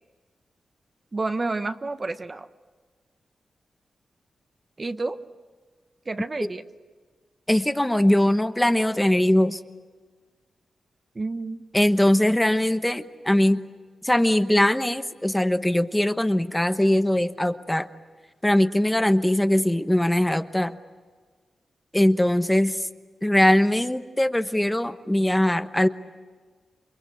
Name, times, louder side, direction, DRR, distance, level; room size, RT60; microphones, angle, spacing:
voice 1, 1.1-2.5 4.8-5.2 6.0-6.6 11.1-11.6, right 3 dB, 35° right, 10 dB, 1.0 m, -29 dB
voice 2, 7.5-9.6 11.7-13.6 14.0-17.9 18.4-20.7 21.9-22.9 23.2-25.9, left 1 dB, 10° left, 9 dB, 1.0 m, -21 dB
29.0 x 23.0 x 8.3 m, 1.5 s
cardioid pair, 85°, 0 cm